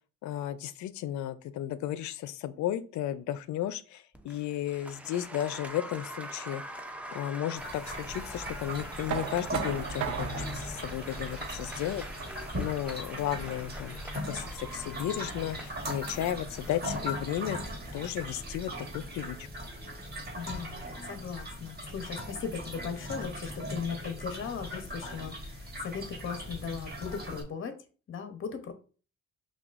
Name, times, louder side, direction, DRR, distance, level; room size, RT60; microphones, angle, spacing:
voice 1, 0.2-6.6 7.1-12.0 12.6-14.0 14.3-19.5, left 12 dB, 70° left, 15 dB, 0.4 m, -34 dB
Applause, 4.1-21.3, right 1 dB, 5° right, 0.5 m, -45 dB
sound 1, 7.6-27.4, equal, 30° right, 1.5 m, -39 dB
Knock, 9.1-14.9, right 8 dB, 85° right, 0.6 m, -39 dB
voice 2, 20.3-27.8 28.1-28.7, left 6 dB, 45° left, 8 dB, 0.7 m, -38 dB
5.8 x 2.3 x 2.4 m, 0.38 s
cardioid pair, 90°, 30 cm